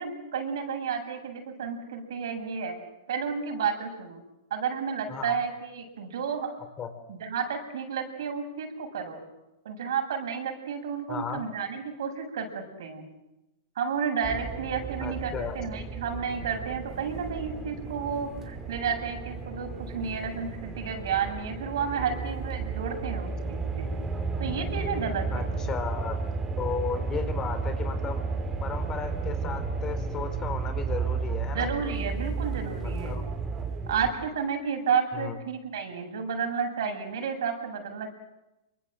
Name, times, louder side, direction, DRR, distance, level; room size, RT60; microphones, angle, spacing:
voice 1, 0.0-2.7 3.1-4.2 4.5-6.6 7.1-9.2 9.6-13.1 13.7-23.9 24.4-25.5 31.5-33.2 33.9-38.1, right 6 dB, 70° right, 4 dB, 7.9 m, -31 dB
voice 2, 11.1-11.4 15.0-15.6 25.3-26.2 26.6-28.2 28.6-31.7 33.0-33.3 35.1-35.3, left 6 dB, 25° left, 10 dB, 3.9 m, -34 dB
sound 1, 14.2-34.1, right 4 dB, 15° right, 5.2 m, -33 dB
27.5 x 24.5 x 7.8 m, 0.96 s
hypercardioid pair, 125°, 2 cm